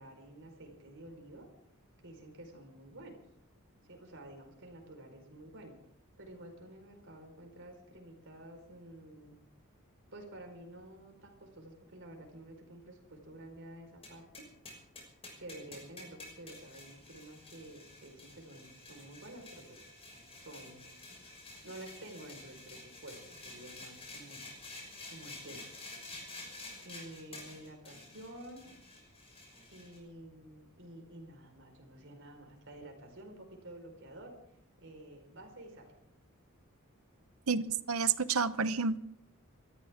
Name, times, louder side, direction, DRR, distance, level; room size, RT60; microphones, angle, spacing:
voice 1, 0.0-1.5 2.0-3.1 3.8-5.7 6.2-9.4 10.1-14.4 15.4-19.9 20.4-20.8 21.6-24.4 25.1-25.7 26.8-28.6 29.7-34.3 34.8-35.9, right 1 dB, 60° right, 4.7 m, -50 dB
sound 1, 14.0-30.0, left 2 dB, 30° left, 6.2 m, -50 dB
voice 2, 37.5-39.0, right 5 dB, 80° right, 0.9 m, -30 dB
28.0 x 14.0 x 3.7 m
head